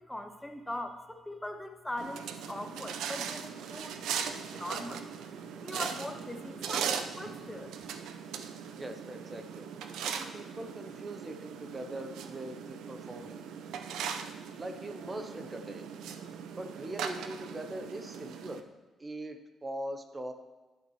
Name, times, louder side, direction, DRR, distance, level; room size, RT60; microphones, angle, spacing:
voice 1, 0.0-4.0 4.2-5.1 5.6-7.7, left 1 dB, 10° left, 6 dB, 0.8 m, -41 dB
sound 1, 2.0-18.6, right 7 dB, 90° right, 0.6 m, -39 dB
voice 2, 8.7-9.7 10.1-13.4 14.6-15.9 16.5-18.6 19.0-20.3, right 1 dB, 25° right, 7 dB, 0.8 m, -41 dB
11.0 x 8.6 x 3.1 m, 1.2 s
cardioid pair, 100°, 0 cm